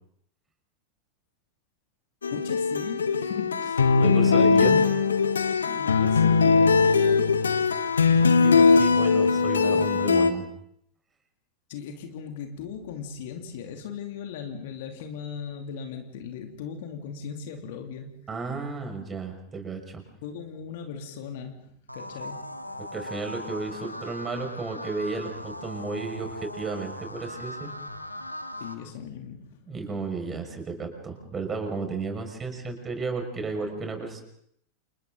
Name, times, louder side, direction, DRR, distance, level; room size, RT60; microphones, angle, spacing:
Folk ballad guitar improv., 2.2-10.3, left 5 dB, 70° left, 1.5 m, -20 dB
voice 1, 2.3-5.1 5.6-7.5 11.7-18.2 20.2-22.6 28.6-29.6, left 7 dB, 50° left, 4 dB, 2.7 m, -38 dB
voice 2, 4.0-4.8 8.1-10.5 18.3-20.0 22.9-27.7 29.7-34.2, right 4 dB, 20° right, 4 dB, 5.9 m, -33 dB
sound 1, 21.9-28.7, left 1 dB, 90° left, 1.9 m, -39 dB
29.5 x 29.0 x 3.9 m, 0.71 s
figure-of-eight pair, 90°, 0 cm